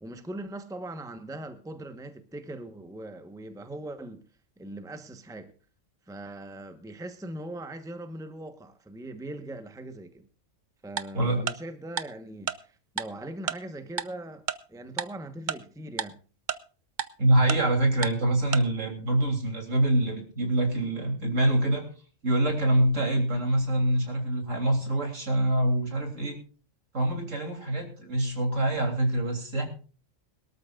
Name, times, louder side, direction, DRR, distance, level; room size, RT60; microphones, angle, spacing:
voice 1, 0.0-4.2 4.6-5.5 6.1-10.3 10.8-14.4 14.7-16.2, right 1 dB, 5° right, 1.0 m, -40 dB
Tick-tock, 11.0-11.1 11.5-11.6 12.0-12.1 12.5-12.6 13.0-13.1 13.5-13.6 14.0-14.1 14.5-14.6 15.0-15.1 15.5-15.6 16.0-16.1 16.5-16.6 17.0-17.1 17.5-17.6 18.0-18.1 18.5-18.6, right 7 dB, 45° right, 0.7 m, -29 dB
voice 2, 11.1-11.5 17.2-21.8 22.2-26.4 26.9-29.7, right 1 dB, 70° right, 3.6 m, -25 dB
22.5 x 13.0 x 2.5 m
omnidirectional pair, 1.4 m